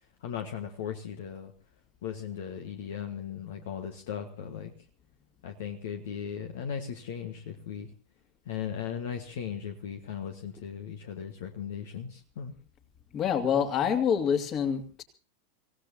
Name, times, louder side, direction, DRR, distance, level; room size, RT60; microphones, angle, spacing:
voice 1, 0.2-1.5 2.0-4.7 5.4-7.9 8.4-12.5, left 8 dB, 55° left, 6 dB, 1.5 m, -37 dB
voice 2, 13.1-15.0, left 8 dB, 30° left, 7 dB, 2.5 m, -26 dB
26.0 x 17.0 x 2.9 m, 0.35 s
figure-of-eight pair, 90°, 0 cm